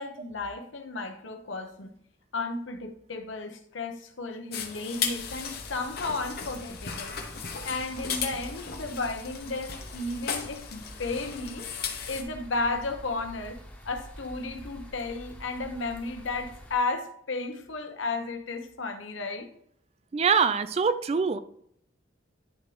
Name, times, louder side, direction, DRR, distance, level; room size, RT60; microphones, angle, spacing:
voice 1, 0.0-1.9 2.3-7.1 7.6-11.7 12.1-13.6 13.8-19.5, left 3 dB, 80° left, 6 dB, 0.9 m, -33 dB
sound 1, 4.5-12.2, left 6 dB, 50° left, 0.9 m, -36 dB
Rain in Forest, 5.0-16.8, equal, 10° left, 0.9 m, -47 dB
voice 2, 20.1-21.4, right 5 dB, 35° right, 13 dB, 0.3 m, -24 dB
9.9 x 3.8 x 3.3 m, 0.70 s
head